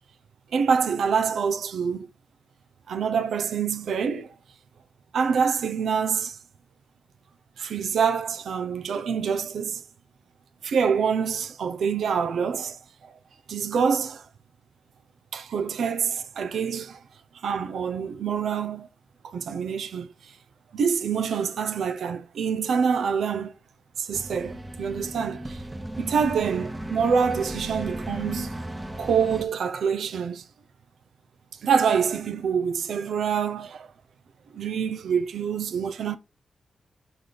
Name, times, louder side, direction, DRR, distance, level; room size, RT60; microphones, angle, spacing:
voice 1, 0.5-2.1 2.9-4.3 5.1-6.4 7.6-9.8 10.6-12.8 13.5-14.2 15.3-17.0 17.4-18.9 19.2-20.1 20.7-23.5 24.0-25.6 26.0-28.5 29.0-30.4 31.6-33.9 34.5-36.2, right 6 dB, 85° right, 0.6 m, -26 dB
sound 1, 24.1-29.4, right 1 dB, 15° right, 1.0 m, -35 dB
6.1 x 5.0 x 4.0 m
cardioid pair, 95°, 0 cm